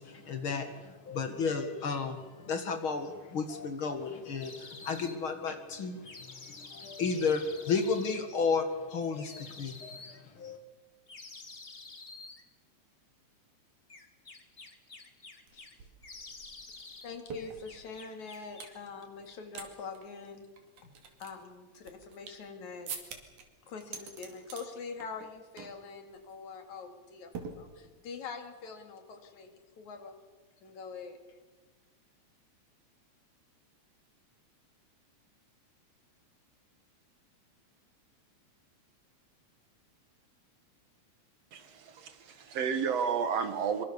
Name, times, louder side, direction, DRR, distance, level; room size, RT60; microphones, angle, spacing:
voice 1, 0.0-10.6, left 5 dB, 45° left, 7 dB, 2.5 m, -33 dB
sound 1, 4.4-5.2 6.0-8.2 9.2-10.2 11.1-12.4 13.9-15.7 16.0-17.1 17.3-18.8, left 3 dB, 25° left, 1.6 m, -49 dB
sound 2, 15.5-15.6 15.8-18.8 19.2-19.7 19.9-20.0 20.6-22.5 22.9-23.4 23.8-24.7 25.0-25.3 25.6-25.8 26.1-26.4 27.3-28.1, right 5 dB, 85° right, 4.0 m, -45 dB
voice 2, 17.0-20.5 20.8-20.9 21.2-22.9 23.7-27.3 27.6-30.2 30.6-31.2, left 5 dB, 75° left, 5 dB, 3.6 m, -44 dB
voice 3, 41.5-43.8, right 6 dB, 60° right, 10 dB, 2.4 m, -32 dB
24.0 x 24.0 x 7.0 m, 1.3 s
omnidirectional pair, 3.4 m